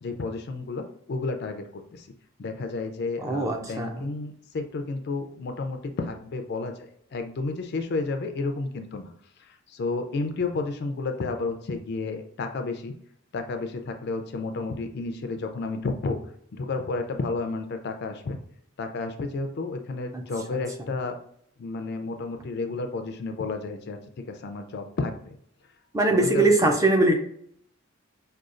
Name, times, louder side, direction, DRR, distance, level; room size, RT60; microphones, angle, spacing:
voice 1, 0.0-2.1 2.4-9.1 9.5-12.9 13.3-16.2 16.5-18.4 18.8-21.2 21.6-25.4 26.1-26.7, left 3 dB, 50° left, 6 dB, 0.4 m, -31 dB
voice 2, 3.2-3.9 20.1-20.2 25.9-27.2, right 2 dB, 15° right, 3 dB, 0.4 m, -21 dB
4.9 x 2.3 x 2.4 m, 0.66 s
head